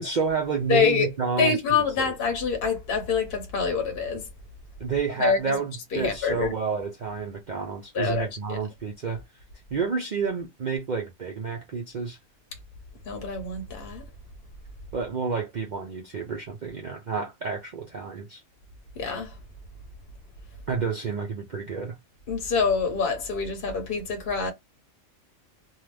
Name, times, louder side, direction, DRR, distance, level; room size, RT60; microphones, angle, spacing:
voice 1, 0.0-2.1 4.8-9.2 9.7-12.2 14.9-18.4 20.7-22.0, right 5 dB, 55° right, 0.5 m, -30 dB
voice 2, 0.7-1.1 1.4-4.3 5.2-5.6 5.9-6.5 7.9-8.6 13.1-14.0 19.0-19.3 22.3-24.5, left 5 dB, 50° left, 0.9 m, -26 dB
2.7 x 2.3 x 3.2 m
omnidirectional pair, 1.4 m